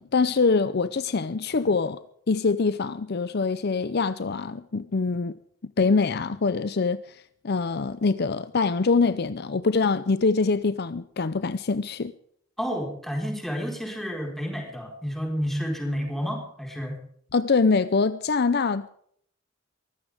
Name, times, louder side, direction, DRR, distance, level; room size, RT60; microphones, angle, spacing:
voice 1, 0.0-2.0 2.3-5.4 5.8-12.1 17.3-18.9, left 4 dB, 55° left, 0.6 m, -24 dB
voice 2, 12.6-17.0, equal, ahead, 4.5 m, -30 dB
23.0 x 15.0 x 3.5 m
head